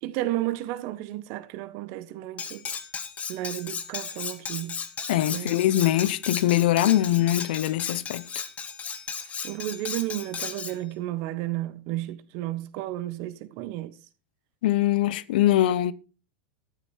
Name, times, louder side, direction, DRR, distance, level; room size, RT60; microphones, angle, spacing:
voice 1, 0.0-2.6 3.3-4.8 5.3-5.5 9.4-14.0, right 15 dB, 55° right, 1.4 m, -32 dB
Cutlery silverware, 2.4-10.8, left 6 dB, 25° left, 1.9 m, -35 dB
voice 2, 5.1-8.4 14.6-15.9, left 13 dB, 70° left, 0.8 m, -23 dB
13.5 x 8.9 x 4.5 m
hypercardioid pair, 105°, 5 cm